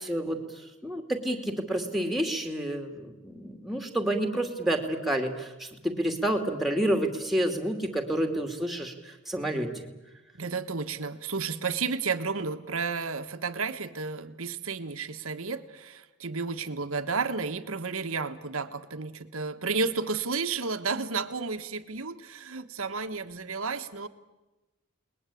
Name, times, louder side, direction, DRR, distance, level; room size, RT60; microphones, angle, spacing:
voice 1, 0.1-0.4 0.8-9.7, right 1 dB, ahead, 5 dB, 2.5 m, -29 dB
voice 2, 10.4-24.1, right 4 dB, 70° right, 9 dB, 1.5 m, -32 dB
29.5 x 21.0 x 8.5 m, 1.1 s
head